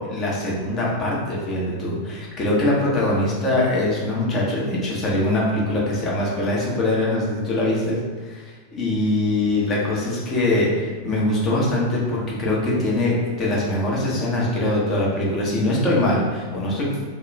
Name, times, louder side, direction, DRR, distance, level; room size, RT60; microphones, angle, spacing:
voice 1, 0.0-17.0, left 1 dB, 25° left, -5 dB, 0.7 m, -22 dB
2.3 x 2.0 x 3.2 m, 1.4 s
figure-of-eight pair, 90°, 0 cm